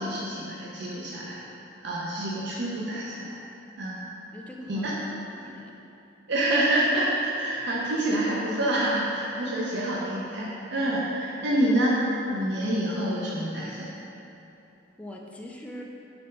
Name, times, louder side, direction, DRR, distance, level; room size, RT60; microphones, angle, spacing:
voice 1, 0.0-1.4 1.8-3.3 3.8-4.1 4.7-5.0 6.3-12.0 12.2-13.9, right 1 dB, 65° right, -5 dB, 0.6 m, -27 dB
voice 2, 4.3-4.9 5.2-5.8 11.5-11.6 15.0-15.8, left 1 dB, 5° left, -1 dB, 0.4 m, -42 dB
4.4 x 4.2 x 5.2 m, 2.8 s
head